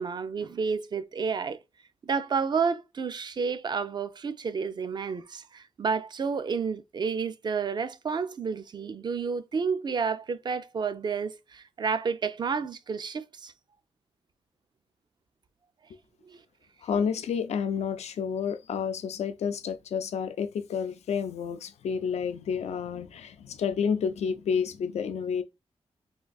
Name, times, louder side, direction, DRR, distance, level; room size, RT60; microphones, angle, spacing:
voice 1, 0.0-1.6 2.0-13.5 16.3-16.4, right 5 dB, 40° right, 0.3 m, -30 dB
voice 2, 16.8-25.4, left 6 dB, 85° left, 0.4 m, -30 dB
3.5 x 2.5 x 2.3 m
wide cardioid pair, 120°, 11 cm